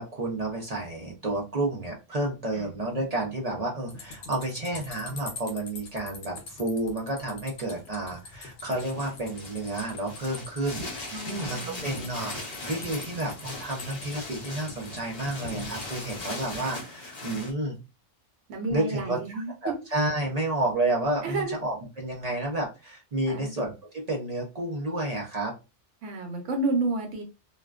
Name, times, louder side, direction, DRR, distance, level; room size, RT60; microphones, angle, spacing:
voice 1, 0.0-17.7 18.7-19.2 19.6-25.5, right 2 dB, 45° right, -1 dB, 0.6 m, -31 dB
sound 1, 3.9-16.6, left 3 dB, 70° left, 0.9 m, -44 dB
sound 2, 8.6-17.5, left 2 dB, 45° left, 0.6 m, -39 dB
voice 2, 11.1-11.9 18.5-19.7 21.2-21.6 23.3-23.5 26.0-27.2, right 2 dB, 85° right, 3 dB, 1.0 m, -31 dB
2.5 x 2.1 x 2.3 m, 0.27 s
omnidirectional pair, 1.2 m